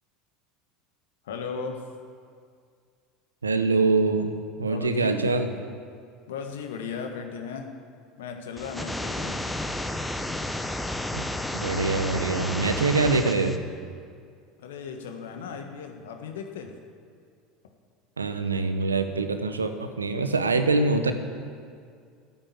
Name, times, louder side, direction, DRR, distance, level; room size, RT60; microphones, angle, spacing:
voice 1, 1.2-1.8 4.7-5.1 6.3-7.7 8.2-9.4 11.7-11.9 14.6-16.7, left 6 dB, 70° left, 4 dB, 1.6 m, -36 dB
voice 2, 3.4-4.3 4.6-5.5 11.1-11.2 11.5-13.6 18.2-21.1, right 3 dB, 85° right, 8 dB, 1.0 m, -24 dB
sound 1, 8.6-13.6, left 1 dB, 5° left, 1.1 m, -31 dB
12.5 x 9.9 x 8.7 m, 2.2 s
figure-of-eight pair, 70°, 0 cm